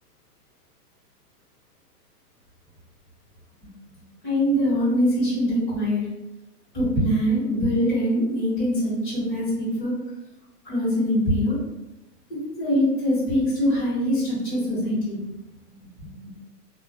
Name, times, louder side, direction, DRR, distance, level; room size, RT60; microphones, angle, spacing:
voice 1, 4.2-6.0 6.7-9.9 10.6-11.6 12.6-15.2 16.0-16.1, equal, 30° left, -11 dB, 1.1 m, -23 dB
2.4 x 2.1 x 2.4 m, 0.97 s
hypercardioid pair, 175°, 48 cm